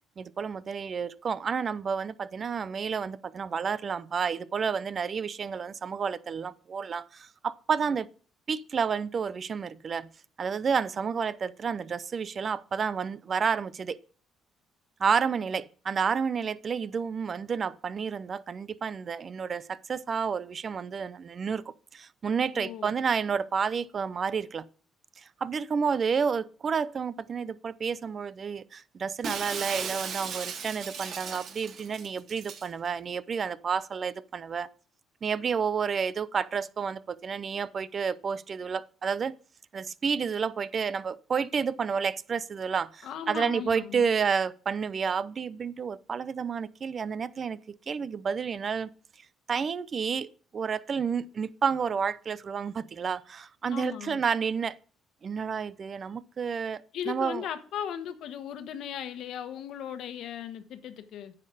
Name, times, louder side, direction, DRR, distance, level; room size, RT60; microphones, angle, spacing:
voice 1, 0.2-8.1 8.5-10.1 10.4-14.0 15.0-21.6 21.9-24.7 25.2-34.7 35.2-39.3 39.7-47.6 47.9-48.9 49.5-50.3 50.5-54.8 55.2-57.5, right 6 dB, 45° right, 0.6 m, -30 dB
voice 2, 22.5-22.9 43.0-44.0 53.7-54.2 56.9-61.3, left 9 dB, 70° left, 1.2 m, -37 dB
Shatter, 29.2-32.7, right 6 dB, 60° right, 1.9 m, -36 dB
9.6 x 6.6 x 5.0 m
cardioid pair, 85°, 0 cm